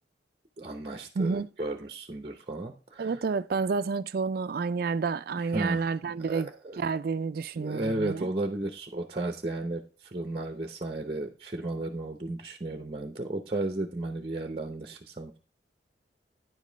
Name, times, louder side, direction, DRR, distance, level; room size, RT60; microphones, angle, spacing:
voice 1, 0.6-3.2 5.4-6.8 7.5-15.4, right 2 dB, 30° right, 0.7 m, -34 dB
voice 2, 1.2-1.5 3.0-6.5 6.8-8.3, right 4 dB, 55° right, 0.4 m, -29 dB
9.8 x 5.3 x 3.9 m
head